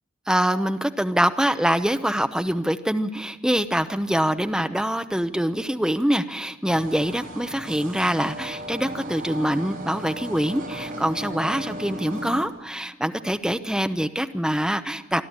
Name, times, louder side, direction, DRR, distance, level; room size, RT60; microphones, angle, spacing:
voice 1, 0.3-15.2, equal, 5° right, 8 dB, 0.7 m, -24 dB
sound 1, 6.6-12.4, right 1 dB, 45° right, 4.2 m, -36 dB
26.5 x 12.0 x 9.7 m, 1.3 s
head